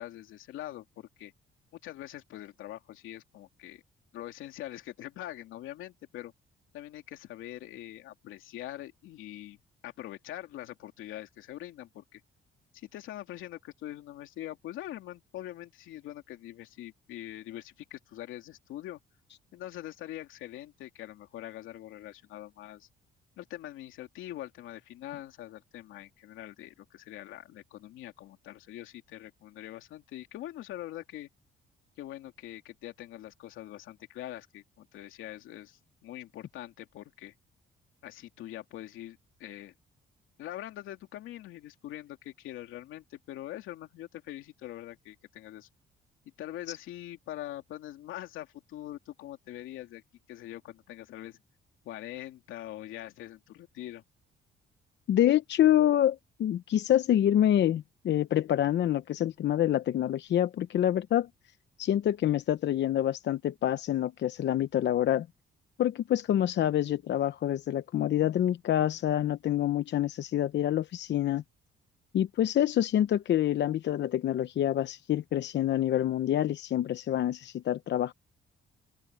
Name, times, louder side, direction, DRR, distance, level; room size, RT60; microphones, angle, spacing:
voice 1, 0.0-1.3 1.7-3.8 4.1-6.3 6.7-9.6 9.8-12.2 12.7-19.0 19.5-22.9 23.4-31.3 32.0-37.3 38.0-39.7 40.4-45.7 46.4-50.0 50.3-51.4 51.8-54.0, left 13 dB, 90° left, 2.8 m, -43 dB
voice 2, 55.1-61.3 61.8-65.3 65.8-71.4 72.1-78.1, left 11 dB, 65° left, 0.8 m, -27 dB
open air
cardioid pair, 90°, 20 cm